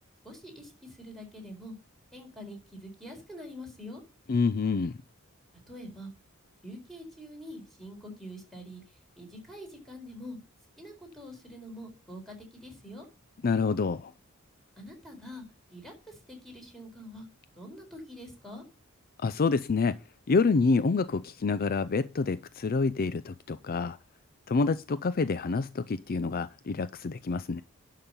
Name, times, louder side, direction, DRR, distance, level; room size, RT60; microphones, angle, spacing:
voice 1, 0.2-1.7 2.1-4.0 5.7-6.1 6.6-8.8 9.1-10.4 10.8-13.1 14.8-15.4 15.7-17.2 17.6-18.6, equal, ahead, 4.3 m, -45 dB
voice 2, 4.3-4.9 13.4-14.1 19.2-20.0 20.3-24.0 24.5-27.6, left 4 dB, 45° left, 0.4 m, -27 dB
11.5 x 5.8 x 5.3 m
head